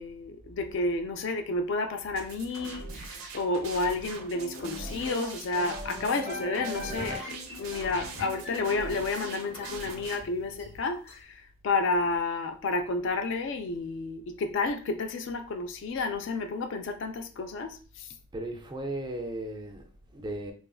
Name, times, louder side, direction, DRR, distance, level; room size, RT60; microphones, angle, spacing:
voice 1, 0.0-18.1, left 3 dB, 60° left, 0.4 m, -31 dB
sound 1, 2.2-10.2, right 4 dB, 75° right, 0.5 m, -42 dB
sound 2, 4.3-11.2, left 2 dB, 30° left, 0.8 m, -41 dB
voice 2, 18.3-20.5, right 1 dB, 20° right, 0.3 m, -36 dB
3.0 x 2.4 x 2.3 m
head